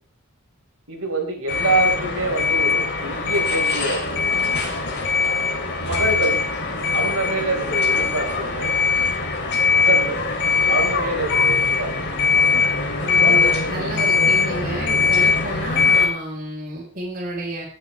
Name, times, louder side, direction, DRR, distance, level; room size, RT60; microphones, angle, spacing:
voice 1, 0.9-4.2 5.3-5.4 5.8-6.4 6.9-8.7 9.7-10.2 10.7-12.2, right 2 dB, 70° right, 1 dB, 5.3 m, -26 dB
sound 1, 1.5-16.1, left 4 dB, 50° left, 3.4 m, -21 dB
voice 2, 13.0-17.6, right 1 dB, 40° right, -5 dB, 4.7 m, -31 dB
20.0 x 10.0 x 3.5 m, 0.41 s
head